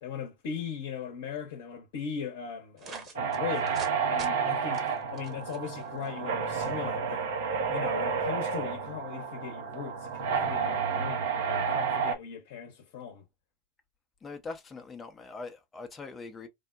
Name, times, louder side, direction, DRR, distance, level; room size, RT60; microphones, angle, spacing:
voice 1, 0.0-3.7 4.1-7.2 7.7-13.3, left 7 dB, 60° left, 0.8 m, -39 dB
sound 1, 2.8-4.3 4.7-6.1, right 5 dB, 35° right, 1.0 m, -44 dB
sound 2, 3.2-12.2, right 6 dB, 65° right, 0.6 m, -30 dB
voice 2, 14.2-16.5, left 4 dB, 20° left, 0.5 m, -42 dB
3.5 x 2.1 x 2.4 m
hypercardioid pair, 90°, 0 cm